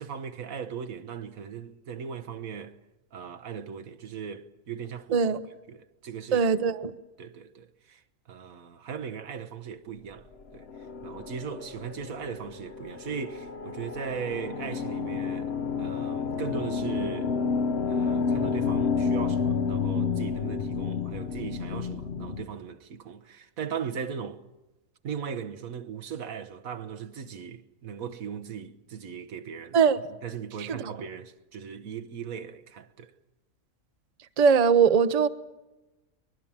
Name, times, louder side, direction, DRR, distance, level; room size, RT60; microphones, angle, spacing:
voice 1, 0.0-2.8 3.1-5.2 5.7-6.5 7.2-8.0 8.3-10.7 11.0-17.3 17.9-24.4 25.0-29.8 30.2-33.1, right 7 dB, 85° right, 1.6 m, -38 dB
voice 2, 6.3-6.9 29.7-30.0 30.7-30.8 34.4-35.3, right 6 dB, 35° right, 0.8 m, -21 dB
sound 1, 10.6-22.4, left 5 dB, 55° left, 1.1 m, -30 dB
23.5 x 21.5 x 7.3 m
omnidirectional pair, 1.4 m